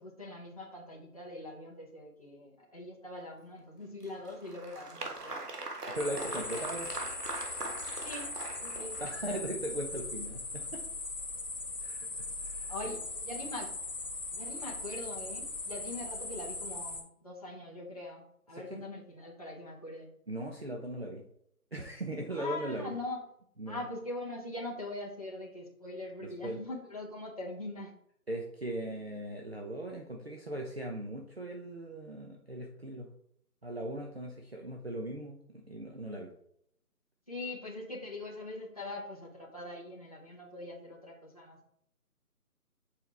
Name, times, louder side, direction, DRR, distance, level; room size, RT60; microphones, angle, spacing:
voice 1, 0.0-5.5 6.0-6.2 8.0-8.3 8.6-9.0 12.7-13.8 14.3-20.1 22.3-23.3 23.7-27.9 37.3-41.6, left 2 dB, 25° left, -4 dB, 0.8 m, -42 dB
Applause, 4.0-9.3, right 2 dB, 85° right, 1.7 m, -41 dB
voice 2, 5.9-6.9 9.0-10.9 11.8-13.0 18.5-18.8 20.3-21.2 21.7-22.9 23.6-23.8 26.2-26.6 28.3-33.1 33.6-36.3, right 1 dB, 45° right, 1 dB, 0.7 m, -39 dB
sound 1, 6.0-17.0, left 3 dB, 70° left, 2.1 m, -39 dB
7.2 x 4.7 x 3.4 m, 0.71 s
figure-of-eight pair, 170°, 46 cm